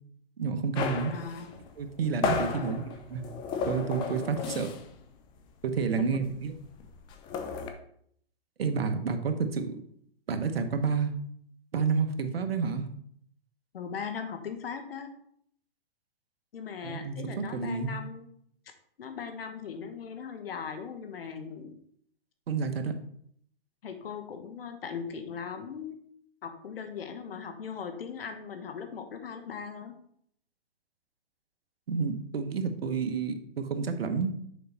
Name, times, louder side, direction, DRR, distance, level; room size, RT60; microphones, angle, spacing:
voice 1, 0.4-1.1 1.8-3.2 3.7-4.7 5.6-6.5 8.6-9.8 10.3-11.1 11.7-12.9 16.8-17.9 22.5-22.9 31.9-34.3, right 5 dB, 75° right, 8 dB, 1.1 m, -30 dB
sound 1, 0.7-5.0 5.3-5.5 5.8-7.7, left 5 dB, 15° left, 0.5 m, -34 dB
voice 2, 1.1-1.5 2.5-2.8 6.1-6.2 13.7-15.1 16.5-18.3 19.0-21.7 23.8-26.0 26.4-29.9, left 6 dB, 70° left, 7 dB, 1.4 m, -39 dB
6.7 x 5.3 x 4.0 m, 0.67 s
hypercardioid pair, 135°, 30 cm